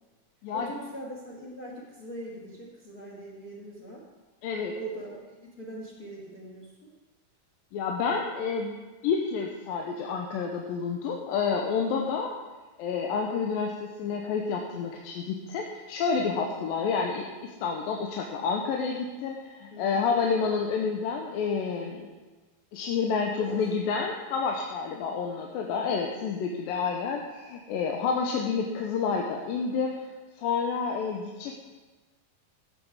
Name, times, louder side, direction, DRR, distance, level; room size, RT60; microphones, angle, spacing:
voice 1, 0.5-4.0 4.7-6.9 16.3-16.6 19.7-20.1 23.3-23.7 25.6-25.9, right 1 dB, 40° left, -3 dB, 1.4 m, -42 dB
voice 2, 4.4-4.7 7.7-8.8 9.0-12.3 12.8-22.1 22.7-29.9 30.4-31.6, left 5 dB, 85° left, 1 dB, 2.6 m, -29 dB
13.5 x 8.2 x 4.7 m, 1.3 s
omnidirectional pair, 4.0 m